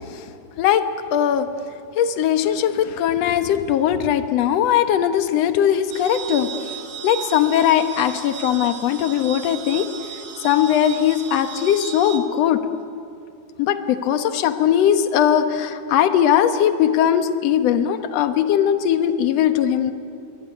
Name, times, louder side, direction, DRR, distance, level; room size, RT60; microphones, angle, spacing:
voice 1, 1.1-1.5 2.0-6.5 7.0-9.9 10.4-12.6 13.6-19.9, left 10 dB, 60° left, 9 dB, 2.0 m, -19 dB
sound 1, 5.9-12.2, right 9 dB, 85° right, 4.1 m, -35 dB
26.0 x 23.0 x 9.8 m, 2.4 s
omnidirectional pair, 3.8 m